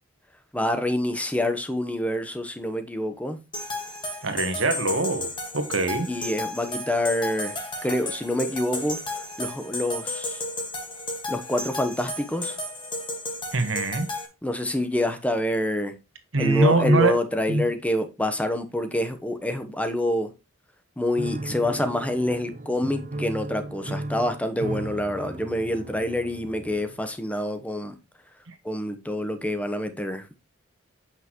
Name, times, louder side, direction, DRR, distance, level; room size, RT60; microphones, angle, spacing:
voice 1, 0.5-3.4 6.1-7.6 7.8-9.0 9.4-10.4 11.3-12.6 14.4-15.9 16.4-20.3 21.0-27.9 28.6-30.2, left 1 dB, 5° left, 1.0 m, -27 dB
sound 1, 3.5-14.3, left 2 dB, 25° left, 1.7 m, -33 dB
voice 2, 4.2-5.3 5.5-6.1 13.5-14.1 16.3-17.2 17.5-17.7 28.5-28.6, right 2 dB, 70° right, 1.5 m, -23 dB
Piano, 21.2-27.1, right 1 dB, 40° right, 0.6 m, -36 dB
8.2 x 5.8 x 3.1 m
head